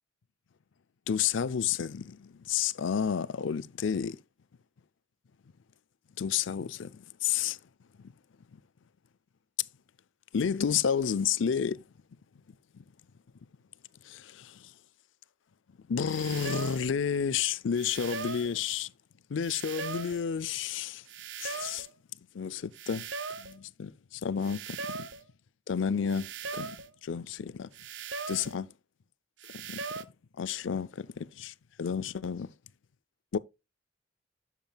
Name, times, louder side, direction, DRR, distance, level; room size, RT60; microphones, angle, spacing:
voice 1, 1.1-4.2 6.2-7.6 8.0-8.1 10.3-11.8 12.7-12.8 14.0-14.7 15.9-18.9 19.3-21.0 21.4-21.9 22.3-23.1 23.4-25.1 25.7-27.7 28.3-28.7 29.5-29.8 30.4-32.5 33.3-33.4, left 7 dB, 80° left, 0.4 m, -31 dB
sound 1, 16.1-16.9 17.7-18.6 19.4-20.2 21.1-21.9 22.7-23.6 24.4-25.2 26.1-26.9 27.7-28.6 29.4-30.0, right 5 dB, 75° right, 0.8 m, -39 dB
10.5 x 7.4 x 2.3 m
head